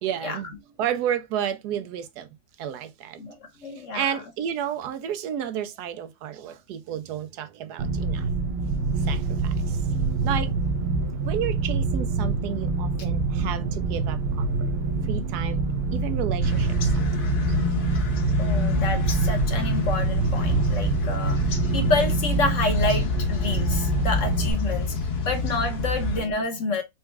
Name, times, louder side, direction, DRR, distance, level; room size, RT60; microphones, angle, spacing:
voice 1, 0.0-0.5 0.8-2.3 2.6-3.2 3.6-8.3 9.0-9.8 10.2-10.5 11.2-14.7 15.0-15.6 15.9-17.1 17.5-17.6, right 9 dB, 85° right, 1.2 m, -31 dB
voice 2, 3.2-4.2 18.4-26.8, left 3 dB, 55° left, 1.2 m, -29 dB
sound 1, 7.8-24.5, right 3 dB, 70° right, 0.6 m, -25 dB
sound 2, 16.4-26.2, left 3 dB, 75° left, 1.6 m, -28 dB
4.1 x 2.3 x 3.3 m
omnidirectional pair, 1.7 m